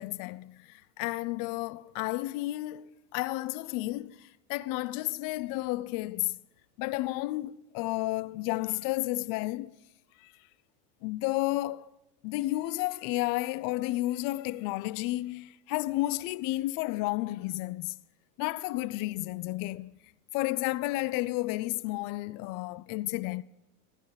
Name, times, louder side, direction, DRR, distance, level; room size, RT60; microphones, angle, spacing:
voice 1, 0.0-6.4 6.8-9.8 10.2-10.3 11.0-11.9 12.2-18.0 18.4-19.9 20.3-23.4, left 18 dB, 45° left, 0.4 m, -32 dB
13.5 x 10.0 x 3.9 m
hypercardioid pair, 100°, 47 cm